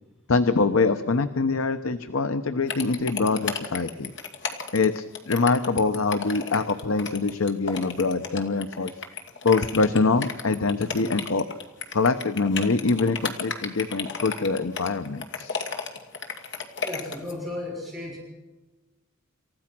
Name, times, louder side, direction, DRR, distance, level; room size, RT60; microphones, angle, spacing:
voice 1, 0.3-4.1 4.7-8.9 9.4-11.4 11.9-15.6, left 3 dB, 90° left, 10 dB, 0.9 m, -24 dB
sound 1, 2.7-17.3, left 5 dB, 60° left, 2.4 m, -33 dB
voice 2, 16.8-18.2, left 2 dB, ahead, -4 dB, 6.5 m, -34 dB
29.0 x 15.0 x 6.1 m, 1.1 s
head